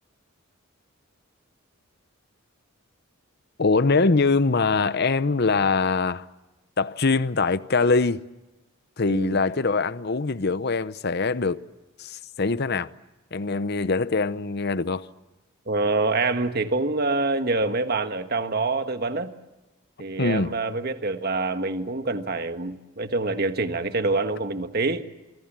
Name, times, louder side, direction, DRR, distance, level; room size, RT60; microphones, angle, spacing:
voice 1, 3.6-6.2 6.8-8.2 9.0-11.6 12.0-12.9 13.3-15.0 20.2-20.5, left 4 dB, 50° left, 0.8 m, -23 dB
voice 2, 9.1-9.4 15.7-19.3 20.0-25.0, right 3 dB, 45° right, 1.5 m, -26 dB
26.5 x 25.5 x 7.5 m
head